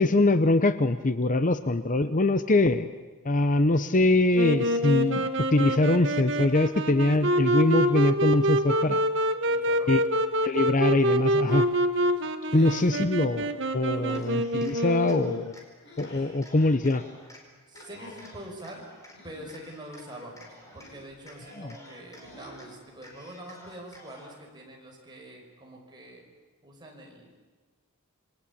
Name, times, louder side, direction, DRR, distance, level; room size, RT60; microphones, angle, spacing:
voice 1, 0.0-2.9 3.2-9.0 9.9-10.0 10.4-11.7 12.5-15.5 16.0-17.0 21.6-21.7, left 2 dB, 35° left, 11 dB, 0.8 m, -23 dB
Wind instrument woodwind instrument, 4.3-15.5, right 1 dB, 55° right, 1.8 m, -26 dB
voice 2, 9.4-10.0 12.5-13.0 13.9-14.2 17.7-18.8 19.2-26.2 26.6-27.3, right 1 dB, 20° right, 0 dB, 5.7 m, -45 dB
sound 1, 11.5-11.9 12.5-12.9 13.9-14.4 15.8-16.3 17.7-18.3 19.1-19.6 20.6-21.2 22.2-22.9, left 1 dB, 55° left, 5.4 m, -49 dB
Cheering, 14.1-15.6 16.0-17.4 17.7-19.2 19.5-20.9 21.2-22.7 23.0-24.4, left 1 dB, 15° left, 4.9 m, -51 dB
28.0 x 23.0 x 8.6 m, 1.3 s
head